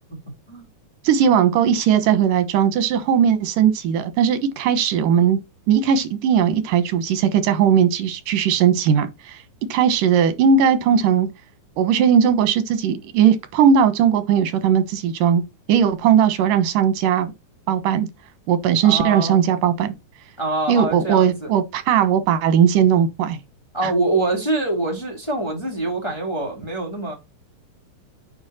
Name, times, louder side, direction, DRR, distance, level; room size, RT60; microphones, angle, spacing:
voice 1, 1.0-5.4 5.7-9.4 9.7-11.3 11.8-15.4 15.7-17.3 17.7-18.1 18.5-19.9 20.7-23.4 23.8-23.9, right 8 dB, 90° right, 2.8 m, -18 dB
voice 2, 18.8-19.4 20.4-21.5 23.7-27.1, right 2 dB, 10° left, 1.9 m, -24 dB
8.8 x 5.3 x 4.2 m
omnidirectional pair, 3.7 m